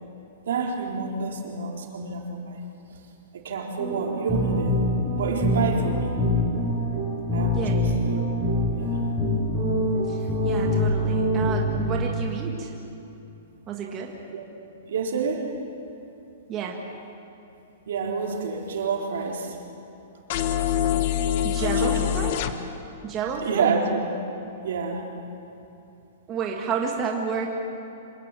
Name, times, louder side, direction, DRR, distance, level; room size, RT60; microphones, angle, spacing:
voice 1, 0.5-2.6 3.3-4.7 5.2-6.2 7.3-8.3 8.7-9.0 14.3-14.4 14.9-15.5 17.9-19.6 21.6-22.2 23.4-24.0 24.6-25.0, right 5 dB, 75° right, 0 dB, 4.1 m, -28 dB
sound 1, 3.8-11.8, left 1 dB, ahead, 6.1 m, -24 dB
voice 2, 10.1-12.7 13.7-14.1 16.5-16.8 21.4-22.4 23.0-23.7 26.3-27.5, right 6 dB, 20° right, 0 dB, 1.6 m, -30 dB
sound 2, 20.3-22.5, left 10 dB, 40° left, 1.1 m, -24 dB
26.0 x 19.0 x 7.5 m, 2.9 s
hypercardioid pair, 175°, 0 cm